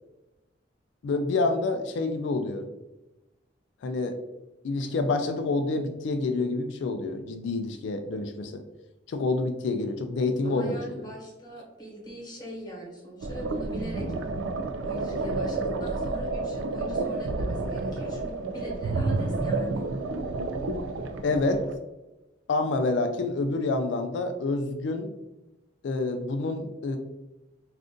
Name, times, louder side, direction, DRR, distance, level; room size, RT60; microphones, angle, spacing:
voice 1, 1.0-2.7 3.8-4.2 4.6-8.6 9.1-11.1 21.2-21.6 22.5-25.1 25.8-27.0, left 3 dB, 70° left, 6 dB, 0.3 m, -28 dB
voice 2, 10.4-14.1 14.8-19.9, equal, 25° left, -3 dB, 1.1 m, -41 dB
sound 1, 13.2-21.8, right 3 dB, 90° right, 0.3 m, -30 dB
2.5 x 2.5 x 3.6 m, 1.0 s
head